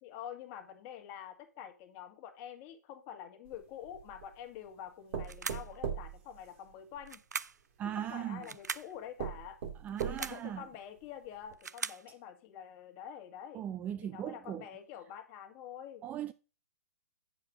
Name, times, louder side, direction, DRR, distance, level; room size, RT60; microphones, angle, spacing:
voice 1, 0.0-7.2 8.0-9.6 10.1-13.6 14.0-16.0, left 9 dB, 35° left, 1.7 m, -47 dB
sound 1, 3.5-4.3 5.1-7.1 8.1-8.2 8.7-8.8 9.2-10.5 11.0-11.1 11.5-11.6, right 8 dB, 50° right, 2.0 m, -39 dB
sound 2, 5.2-5.8 7.1-7.7 8.4-8.9 9.9-10.5 11.3-12.1, right 5 dB, 80° right, 0.4 m, -40 dB
voice 2, 7.8-8.5 9.8-10.6 13.5-14.7 16.0-16.3, right 10 dB, 15° right, 0.3 m, -38 dB
8.6 x 4.8 x 4.7 m
figure-of-eight pair, 125°, 9 cm